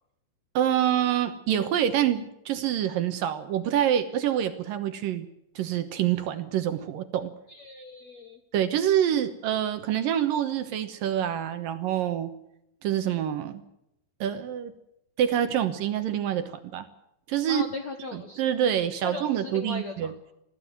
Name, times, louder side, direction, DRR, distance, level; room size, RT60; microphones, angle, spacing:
voice 1, 0.5-5.3 5.6-7.3 8.5-12.3 12.8-13.6 14.2-14.7 15.2-16.9 17.3-17.6 18.1-20.1, right 10 dB, 70° right, 9 dB, 2.2 m, -26 dB
voice 2, 7.5-8.4 17.5-18.7 19.0-20.1, left 4 dB, 60° left, 6 dB, 1.8 m, -38 dB
21.5 x 15.0 x 9.4 m, 0.81 s
omnidirectional pair, 5.3 m